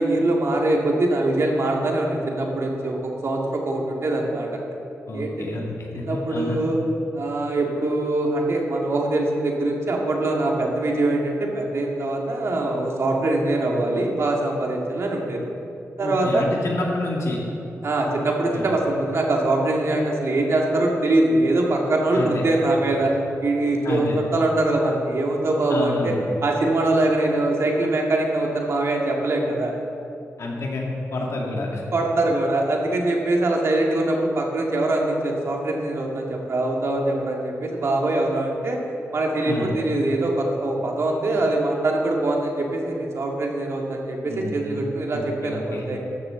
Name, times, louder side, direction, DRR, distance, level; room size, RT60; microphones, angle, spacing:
voice 1, 0.0-4.6 5.1-5.5 5.9-6.8 7.1-15.4 16.0-16.5 17.8-23.1 23.4-26.1 26.4-29.7 31.9-38.8 39.1-46.0, right 2 dB, 55° right, 0 dB, 1.9 m, -23 dB
voice 2, 5.1-6.6 16.0-17.4 18.5-18.7 22.1-22.4 23.8-24.2 25.7-26.2 30.4-31.8 39.4-39.7 44.3-45.8, left 2 dB, 65° left, -1 dB, 2.3 m, -29 dB
14.5 x 12.5 x 3.8 m, 2.8 s
wide cardioid pair, 140°, 5 cm